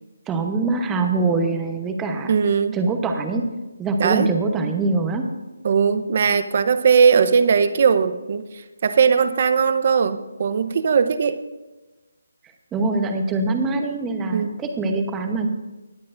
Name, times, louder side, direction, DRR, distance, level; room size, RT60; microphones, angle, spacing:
voice 1, 0.3-2.3 2.7-3.4 3.8-5.3 12.7-15.5, right 3 dB, 10° right, 4 dB, 0.9 m, -23 dB
voice 2, 2.3-2.8 4.0-4.3 5.6-8.5 8.8-11.4 14.3-14.5, right 6 dB, 45° right, 11 dB, 0.8 m, -19 dB
19.5 x 8.4 x 2.6 m, 1.1 s
hypercardioid pair, 165°, 0 cm